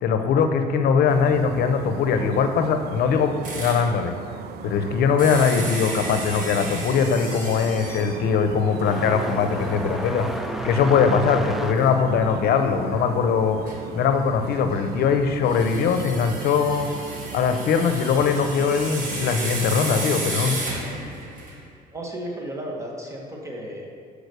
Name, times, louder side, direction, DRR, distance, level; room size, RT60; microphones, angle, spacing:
voice 1, 0.0-4.1 4.6-10.3 10.6-13.6 13.9-16.9 17.3-20.6, left 6 dB, 65° left, 7 dB, 0.7 m, -21 dB
sound 1, 1.1-19.8, right 8 dB, 70° right, 0.5 m, -38 dB
sound 2, 3.4-3.9 5.2-8.2 8.9-9.0 9.4-9.5 11.8-11.9 13.7-13.8 15.4-21.6, right 2 dB, 50° right, 1.8 m, -33 dB
sound 3, 7.9-15.2 15.5-16.5 17.5-17.6 18.4-18.5 20.2-20.4, equal, ahead, 0.4 m, -34 dB
voice 2, 21.9-23.9, right 1 dB, 15° right, -2 dB, 1.5 m, -34 dB
6.2 x 4.9 x 6.7 m, 2.1 s
cardioid pair, 110°, 17 cm